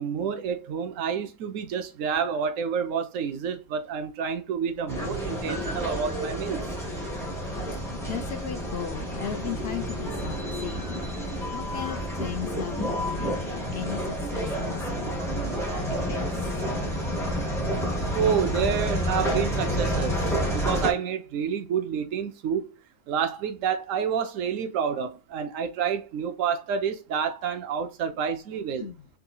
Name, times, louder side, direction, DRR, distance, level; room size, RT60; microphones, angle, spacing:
voice 1, 0.0-6.6 15.4-15.6 18.1-20.2 20.5-22.7 23.1-28.9, right 7 dB, 85° right, 1.0 m, -29 dB
sound 1, 4.9-20.9, equal, ahead, 0.9 m, -29 dB
voice 2, 8.1-16.3 28.8-29.1, left 8 dB, 60° left, 0.7 m, -37 dB
3.6 x 2.8 x 2.3 m
omnidirectional pair, 1.3 m